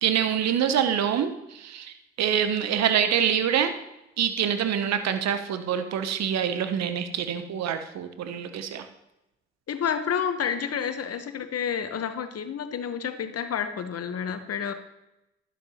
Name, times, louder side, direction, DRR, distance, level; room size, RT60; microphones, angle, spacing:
voice 1, 0.0-3.7 4.2-8.9, right 9 dB, 65° right, 9 dB, 0.9 m, -26 dB
voice 2, 9.7-14.7, left 7 dB, 55° left, 9 dB, 1.1 m, -29 dB
11.5 x 10.0 x 2.9 m, 0.92 s
hypercardioid pair, 40°, 29 cm